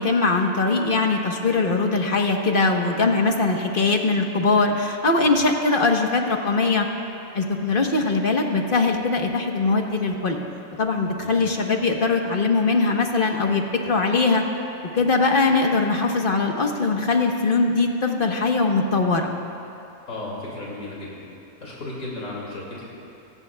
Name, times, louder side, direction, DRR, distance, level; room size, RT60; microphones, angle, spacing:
voice 1, 0.0-6.9 7.3-10.4 10.8-14.4 14.9-19.3, left 3 dB, 40° left, 2 dB, 1.3 m, -21 dB
voice 2, 20.1-21.3 21.6-22.9, left 2 dB, 75° left, -5 dB, 2.9 m, -35 dB
26.0 x 18.5 x 2.3 m, 2.8 s
omnidirectional pair, 1.5 m